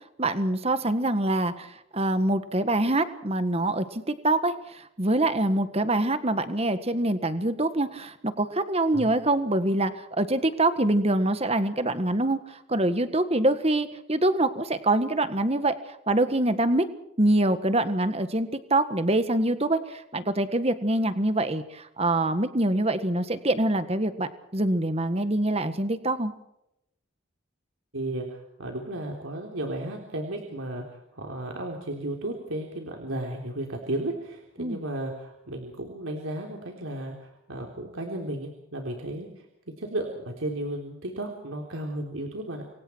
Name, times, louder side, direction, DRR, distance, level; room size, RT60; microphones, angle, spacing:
voice 1, 0.2-12.4 12.7-15.7 16.1-16.9 17.2-26.3 34.6-34.8, right 1 dB, 30° right, 10 dB, 1.6 m, -25 dB
voice 2, 27.9-39.5 39.8-42.6, right 1 dB, 75° right, 1 dB, 3.7 m, -34 dB
29.0 x 23.5 x 4.6 m, 0.81 s
head